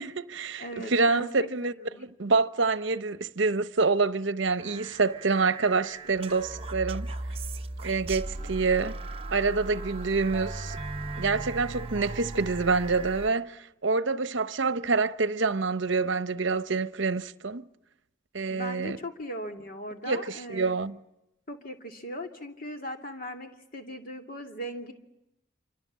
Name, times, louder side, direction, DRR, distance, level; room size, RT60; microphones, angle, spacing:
voice 1, 0.0-1.7 2.0-7.1 7.8-9.0 9.3-10.8 11.2-17.6 18.3-19.0 20.1-21.0, right 4 dB, 65° right, 0.9 m, -27 dB
voice 2, 0.6-2.0 18.5-20.7 21.5-24.9, equal, 45° left, 2.5 m, -39 dB
sound 1, 4.6-13.3, right 2 dB, 30° right, 0.9 m, -37 dB
27.0 x 25.5 x 7.5 m
head